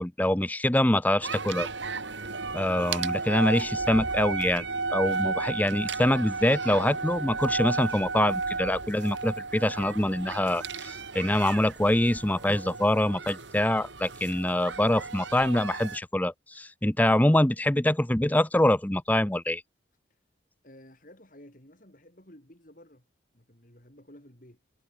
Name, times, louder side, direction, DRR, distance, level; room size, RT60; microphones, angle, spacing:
voice 1, 0.0-1.7 2.5-19.6, left 1 dB, 10° left, 0.6 m, -25 dB
sound 1, 1.2-16.0, right 4 dB, 70° right, 2.7 m, -33 dB
voice 2, 20.6-23.1 23.3-24.6, left 1 dB, 45° left, 5.8 m, -53 dB
head